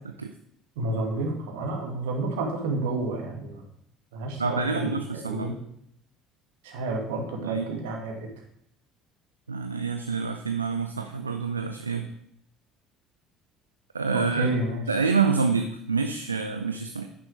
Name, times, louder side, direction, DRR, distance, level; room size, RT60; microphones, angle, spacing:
voice 1, 0.8-3.6 4.1-5.0 5.2-5.5 6.6-8.3 14.1-14.8, right 2 dB, 70° right, 1 dB, 1.9 m, -30 dB
voice 2, 4.4-5.5 7.4-7.6 9.5-12.1 13.9-14.5 14.9-17.1, right 5 dB, 85° right, 6 dB, 0.4 m, -27 dB
9.9 x 5.9 x 4.8 m, 0.71 s
figure-of-eight pair, 60°, 0 cm